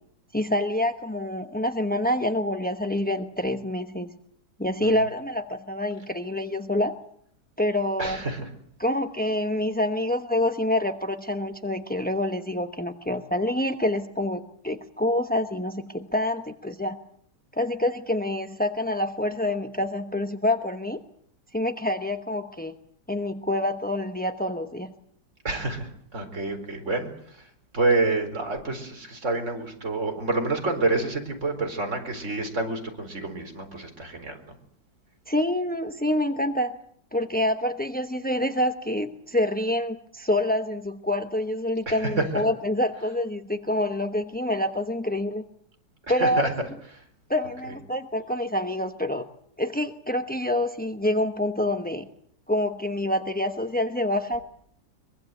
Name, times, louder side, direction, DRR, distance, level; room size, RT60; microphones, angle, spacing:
voice 1, 0.3-4.1 4.6-6.9 7.6-8.2 8.8-17.0 17.5-21.0 21.5-22.7 23.1-24.9 35.3-36.8 37.1-45.4 46.1-46.5 47.3-49.3 49.6-52.1 52.5-54.4, left 1 dB, 10° left, 7 dB, 0.4 m, -27 dB
voice 2, 8.0-8.5 25.4-34.5 41.9-42.4 46.1-46.5 46.9-47.0 47.7-47.8, right 2 dB, 40° right, 4 dB, 4.6 m, -28 dB
23.5 x 23.0 x 8.0 m, 0.66 s
omnidirectional pair, 2.0 m